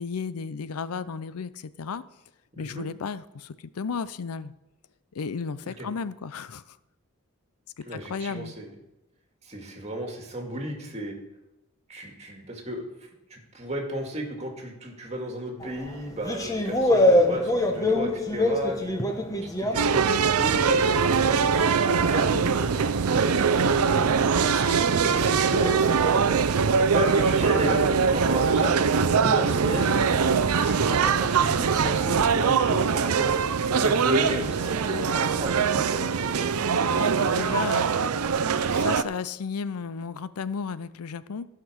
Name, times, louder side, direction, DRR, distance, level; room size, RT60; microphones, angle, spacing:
voice 1, 0.0-2.0 2.6-4.5 5.1-6.8 7.9-8.5 24.5-24.8 36.9-37.9 38.4-41.5, left 5 dB, 85° left, 16 dB, 0.5 m, -34 dB
voice 2, 7.9-8.7 9.4-11.2 11.9-12.8 13.3-18.9 19.4-24.1 24.5-26.4 26.8-33.4 33.7-36.5, right 1 dB, 30° right, 2 dB, 2.1 m, -33 dB
sound 1, 15.6-20.8 21.1-30.0, left 1 dB, 15° left, 1.0 m, -28 dB
sound 2, 19.7-39.0, right 6 dB, 80° right, 0.6 m, -22 dB
sound 3, 31.7-32.5 32.8-33.1, left 2 dB, 60° left, 3.5 m, -49 dB
14.5 x 5.9 x 6.2 m, 0.94 s
head